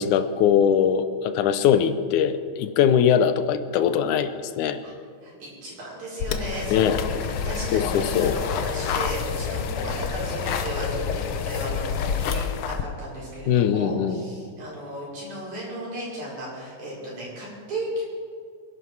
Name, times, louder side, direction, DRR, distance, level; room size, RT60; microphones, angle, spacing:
voice 1, 0.0-4.8 6.7-7.0 7.7-8.3 13.5-14.2, left 8 dB, 85° left, 11 dB, 2.3 m, -21 dB
voice 2, 5.2-18.0, equal, 75° right, -6 dB, 6.6 m, -35 dB
sound 1, 6.2-12.8, left 6 dB, 70° left, 1.4 m, -28 dB
25.0 x 11.5 x 4.7 m, 2.3 s
omnidirectional pair, 3.4 m